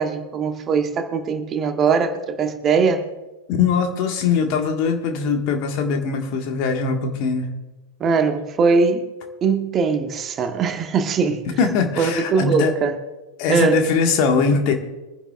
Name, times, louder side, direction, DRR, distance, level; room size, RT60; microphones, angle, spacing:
voice 1, 0.0-3.0 8.0-9.1 9.4-11.4 12.0-13.0 13.5-13.8, right 5 dB, 25° right, 1.3 m, -21 dB
voice 2, 3.5-7.5 11.6-12.7 13.4-14.7, left 5 dB, 45° left, 1.8 m, -21 dB
24.0 x 10.5 x 2.5 m
figure-of-eight pair, 90°, 0 cm